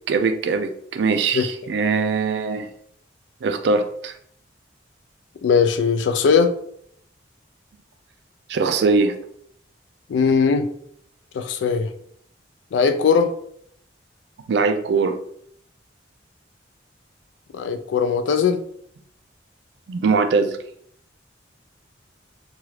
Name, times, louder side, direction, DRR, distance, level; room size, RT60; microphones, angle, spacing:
voice 1, 0.1-2.7 3.4-4.1 8.5-9.2 14.5-15.2 19.9-20.6, right 4 dB, 65° right, 8 dB, 0.3 m, -21 dB
voice 2, 5.4-6.5 10.1-10.7 11.3-11.9 12.7-13.3 17.5-18.6, left 5 dB, 80° left, 9 dB, 0.3 m, -19 dB
3.0 x 2.3 x 3.1 m, 0.67 s
head